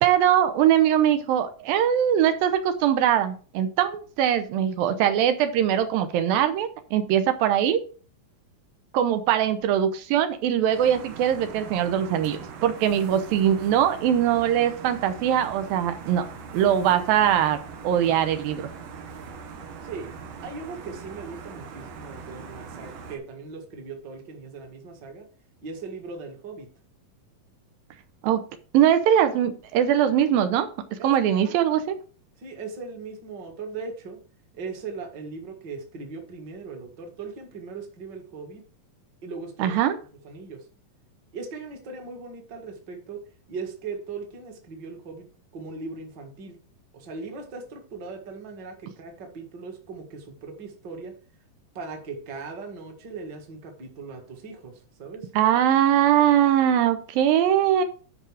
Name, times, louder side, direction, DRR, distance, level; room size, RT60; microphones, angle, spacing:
voice 1, 0.0-7.8 8.9-16.3 16.5-17.6 17.8-18.7 28.2-28.4 28.7-30.7 31.0-32.0 39.6-40.0 55.4-57.8, right 10 dB, 85° right, 9 dB, 2.6 m, -21 dB
sound 1, 10.7-23.2, right 5 dB, 65° right, 2.5 m, -41 dB
voice 2, 19.8-20.1 20.4-25.3 25.6-26.7 31.0-31.5 32.4-34.2 34.5-38.6 39.2-39.7 40.2-40.7 41.3-43.2 43.5-45.3 45.5-46.6 46.9-51.1 51.7-55.3, right 4 dB, 40° right, 3 dB, 1.8 m, -39 dB
10.5 x 5.0 x 4.9 m, 0.39 s
omnidirectional pair, 4.1 m